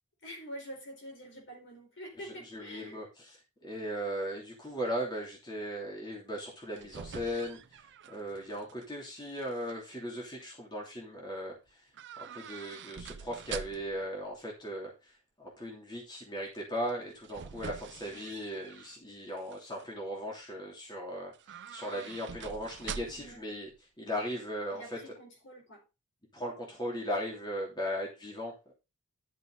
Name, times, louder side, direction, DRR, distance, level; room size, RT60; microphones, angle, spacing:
voice 1, 0.2-3.1 18.1-18.4 23.1-23.4 24.7-25.9, equal, 55° left, 4.5 m, -47 dB
voice 2, 2.3-11.9 12.2-23.7 24.0-25.0 26.3-28.7, equal, 20° left, 3.1 m, -38 dB
sound 1, 6.5-8.9 9.2-9.7 11.9-14.1 16.8-19.0 19.4-19.9 21.3-23.4 23.7-23.8, right 7 dB, 55° right, 0.6 m, -45 dB
11.0 x 6.7 x 3.9 m
head